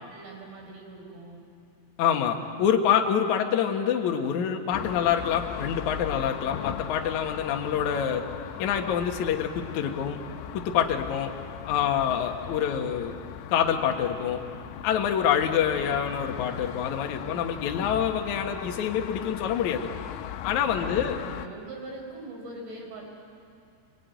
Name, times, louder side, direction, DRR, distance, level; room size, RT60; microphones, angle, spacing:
voice 1, 0.1-1.4 20.8-23.0, right 2 dB, 60° right, 1 dB, 6.6 m, -42 dB
voice 2, 2.0-8.3 8.6-10.2 10.5-11.3 11.6-13.2 13.5-14.4 14.8-19.9 20.4-21.2, left 8 dB, 60° left, 3 dB, 2.1 m, -26 dB
sound 1, 4.7-21.5, left 11 dB, 85° left, 3.3 m, -38 dB
27.5 x 22.5 x 9.4 m, 2.5 s
omnidirectional pair, 5.5 m